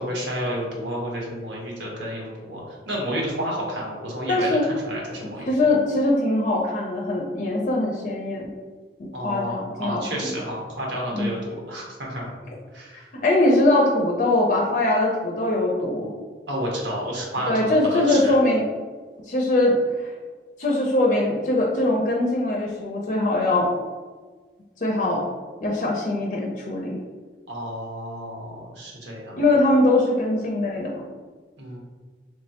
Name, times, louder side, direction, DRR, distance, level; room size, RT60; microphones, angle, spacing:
voice 1, 0.0-5.6 9.1-12.3 12.7-13.1 16.5-18.3 27.5-29.4 31.6-31.8, equal, 85° right, -2 dB, 1.0 m, -31 dB
voice 2, 4.3-4.6 5.4-8.4 9.0-10.3 11.1-11.4 13.2-16.1 17.5-18.6 19.3-20.1 20.6-23.7 24.8-25.2 25.6-27.0 29.4-31.0, left 2 dB, 45° left, -1 dB, 0.5 m, -22 dB
3.4 x 3.2 x 2.8 m, 1.4 s
head